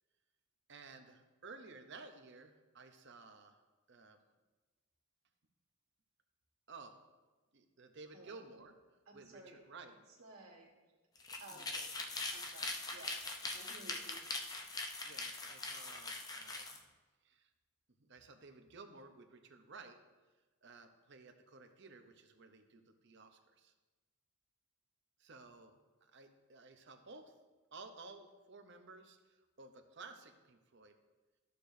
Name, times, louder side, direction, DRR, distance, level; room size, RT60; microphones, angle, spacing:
voice 1, 0.7-3.6 3.9-4.2 6.7-7.0 7.5-8.8 9.1-9.9 15.0-16.8 17.2-17.5 18.0-20.0 20.6-23.7 25.2-25.7 26.0-27.3 27.7-31.0, right 3 dB, 50° right, 7 dB, 0.7 m, -55 dB
voice 2, 8.1-8.4 9.1-9.6 10.2-11.0 11.4-11.9 12.3-14.3, right 2 dB, 80° right, -3 dB, 1.8 m, -56 dB
sound 1, 11.1-16.8, left 3 dB, 15° left, 0.5 m, -42 dB
13.5 x 6.7 x 2.7 m, 1.2 s
head